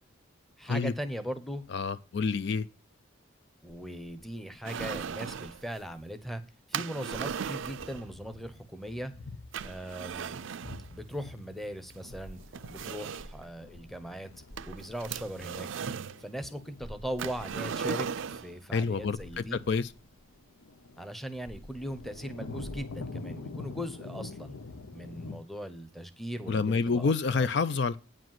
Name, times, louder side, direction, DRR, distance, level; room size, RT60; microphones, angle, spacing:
voice 1, 0.6-1.6 3.6-6.4 6.7-9.1 9.6-10.5 10.9-12.4 12.7-14.3 14.7-15.7 16.2-19.6 21.0-24.6 24.9-27.5, equal, ahead, 0.8 m, -39 dB
voice 2, 1.7-2.7 18.7-19.9 26.5-28.0, left 4 dB, 55° left, 0.4 m, -28 dB
sound 1, 4.6-5.6 6.7-8.0 9.5-10.9 11.9-12.0 12.5-13.4 14.6-16.2 17.2-18.5, right 7 dB, 65° right, 0.4 m, -37 dB
sound 2, 7.7-9.7 10.1-10.2 10.6-25.4, left 3 dB, 85° left, 0.8 m, -46 dB
sound 3, 12.1-16.1 16.8-20.9 21.5-22.9, equal, 25° left, 1.6 m, -52 dB
9.2 x 5.1 x 7.5 m
head